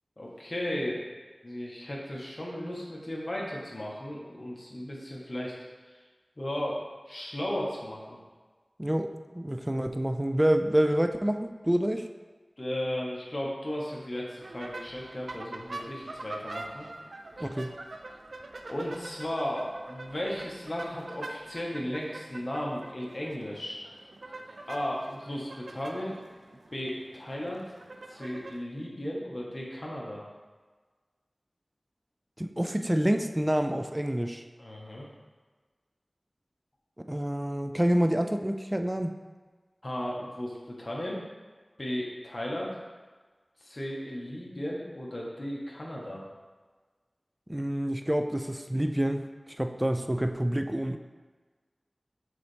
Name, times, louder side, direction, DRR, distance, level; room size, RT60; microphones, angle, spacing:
voice 1, 0.2-1.0 1.4-5.5 5.9-6.0 6.4-6.8 7.1-8.2 12.6-16.9 17.4-17.5 18.7-23.8 24.7-26.2 26.7-27.6 28.1-30.2 34.6-35.1 39.8-41.2 41.8-42.7 43.6-46.2, left 1 dB, 50° left, -4 dB, 1.4 m, -35 dB
voice 2, 8.8-12.1 17.4-17.8 32.4-34.4 37.1-39.1 47.5-49.2 49.6-51.0, right 1 dB, 20° right, 6 dB, 0.4 m, -27 dB
sound 1, 14.4-28.6, right 2 dB, 90° right, 0.3 m, -44 dB
6.8 x 4.1 x 3.4 m, 1.4 s
wide cardioid pair, 45°, 0 cm